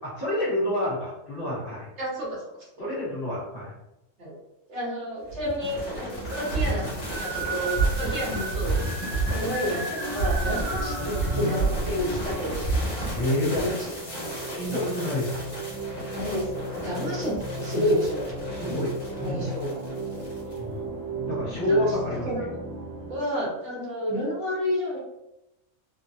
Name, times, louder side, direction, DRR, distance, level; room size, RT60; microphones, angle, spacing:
voice 1, 0.0-1.9 2.8-3.7 13.1-13.6 14.4-15.4 17.0-17.1 18.5-18.9 19.2-19.5 20.6-20.8 21.3-22.5, left 1 dB, 45° left, -8 dB, 1.3 m, -28 dB
voice 2, 4.7-6.8 7.2-8.8 9.2-12.6 12.9-13.1 13.3-13.7 16.1-17.3 17.6-18.3 19.2-19.8 21.7-21.9 22.3-22.5 23.1-25.0, equal, 65° right, -5 dB, 1.2 m, -30 dB
sound 1, 5.3-20.6, right 2 dB, 60° left, 1.5 m, -31 dB
sound 2, 6.1-23.2, right 2 dB, 85° right, 1.1 m, -35 dB
3.2 x 2.2 x 2.6 m, 0.91 s
omnidirectional pair, 1.3 m